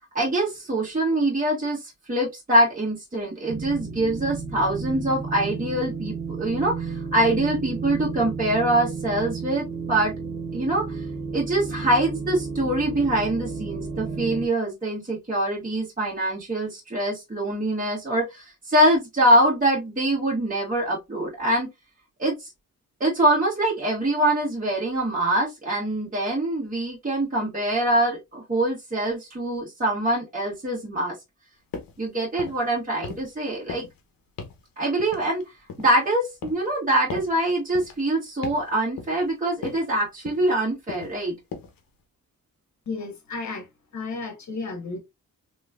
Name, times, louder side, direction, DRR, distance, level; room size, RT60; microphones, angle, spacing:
voice 1, 0.1-10.1 10.5-11.0 11.3-21.7 22.2-22.5 23.0-31.2 32.0-33.8 34.8-35.4 35.8-41.3, right 1 dB, 25° right, 1.6 m, -24 dB
sound 1, 3.5-14.5, right 4 dB, 40° right, 1.1 m, -32 dB
sound 2, 31.7-32.0 32.3-32.7 33.0-33.4 33.7-34.0 34.4-34.6 35.0-36.0 36.4-36.7 37.1-37.4 37.8-38.0 38.4-38.7 39.0-39.3 39.6-39.9 40.3-40.6 40.9-41.2 41.5-41.8, left 5 dB, 75° left, 0.9 m, -38 dB
voice 2, 42.9-45.0, left 4 dB, 55° left, 1.4 m, -33 dB
3.1 x 3.0 x 2.4 m
cardioid pair, 65°, 35 cm